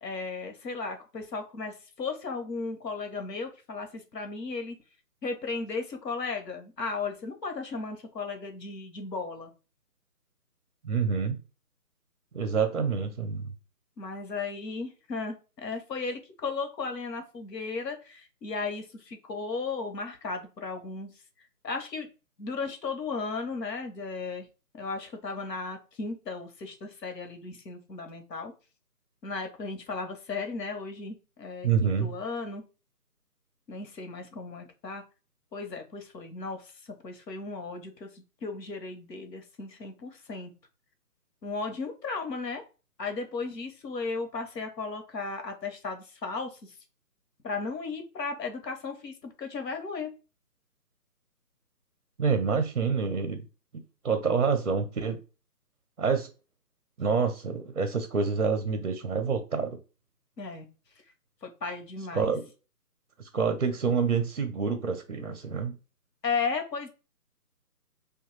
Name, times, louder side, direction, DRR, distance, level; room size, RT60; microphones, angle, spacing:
voice 1, 0.0-4.7 5.2-9.5 14.0-21.1 21.6-22.1 22.4-24.5 24.7-28.5 29.2-32.6 33.7-35.0 35.5-36.7 37.0-40.5 41.4-42.6 43.0-46.7 47.4-50.1 60.4-60.7 61.4-62.3 66.2-66.9, left 4 dB, 85° left, 0.9 m, -35 dB
voice 2, 10.8-11.4 12.3-13.5 31.6-32.2 52.2-53.4 53.7-55.2 56.0-56.3 57.0-59.8 62.1-62.4 63.2-65.7, right 5 dB, 50° right, 0.5 m, -27 dB
2.5 x 2.2 x 3.0 m
figure-of-eight pair, 165°, 48 cm